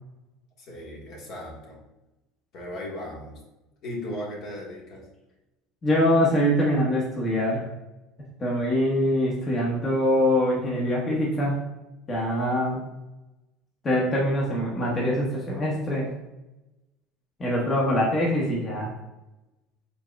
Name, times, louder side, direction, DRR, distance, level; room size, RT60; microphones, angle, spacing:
voice 1, 0.6-1.8 2.5-3.4 3.8-5.0, left 1 dB, 60° left, -3 dB, 1.4 m, -37 dB
voice 2, 5.8-7.6 8.4-11.6 12.1-12.8 13.8-16.1 17.4-18.9, equal, 30° left, -3 dB, 1.0 m, -24 dB
4.5 x 3.8 x 2.3 m, 1.0 s
hypercardioid pair, 85°, 0 cm